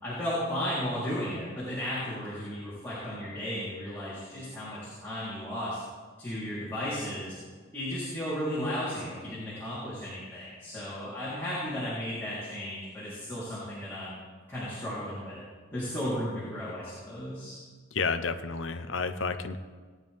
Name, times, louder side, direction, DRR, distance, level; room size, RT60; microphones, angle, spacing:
voice 1, 0.0-5.8 6.2-7.3 7.7-14.2 14.5-15.4 15.7-17.6, equal, 10° left, -11 dB, 3.8 m, -34 dB
voice 2, 17.9-19.6, left 4 dB, 70° left, 10 dB, 0.8 m, -31 dB
18.5 x 9.8 x 3.6 m, 1.5 s
head